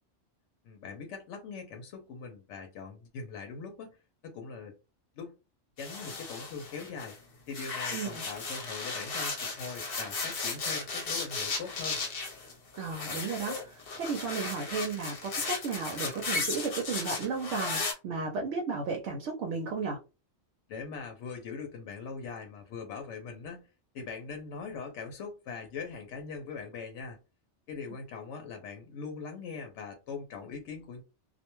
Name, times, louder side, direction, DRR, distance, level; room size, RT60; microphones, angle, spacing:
voice 1, 0.6-4.7 5.2-5.3 5.8-7.2 7.5-12.0 20.7-23.7 23.9-27.2 27.7-31.0, left 5 dB, 85° left, 4 dB, 0.9 m, -41 dB
sound 1, 5.8-7.2 7.5-17.9, left 4 dB, 60° left, 0.9 m, -35 dB
voice 2, 12.8-20.0, right 4 dB, 75° right, 2 dB, 0.9 m, -34 dB
2.3 x 2.1 x 3.0 m, 0.30 s
omnidirectional pair, 1.2 m